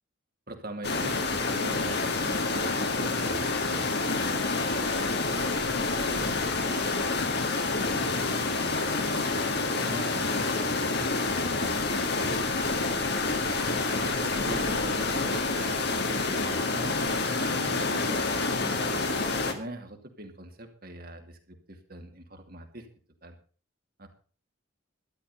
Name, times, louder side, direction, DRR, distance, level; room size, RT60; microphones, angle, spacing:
voice 1, 0.5-4.9 5.3-7.4 7.8-9.4 9.8-11.9 12.1-13.8 14.2-19.0 19.3-22.9 23.2-23.4 24.0-24.1, right 1 dB, 45° right, 5 dB, 2.6 m, -43 dB
sound 1, 0.8-19.5, left 3 dB, 55° left, 2.0 m, -28 dB
13.0 x 11.5 x 5.6 m, 0.41 s
head